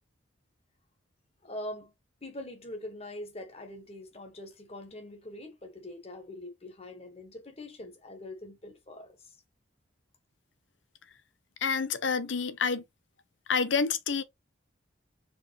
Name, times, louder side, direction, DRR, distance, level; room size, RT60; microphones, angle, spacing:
voice 1, 1.4-1.9 2.2-9.4, left 1 dB, 30° left, 1.4 m, -43 dB
voice 2, 11.6-12.8 13.5-14.2, left 5 dB, 75° left, 0.8 m, -28 dB
4.8 x 3.5 x 3.0 m
head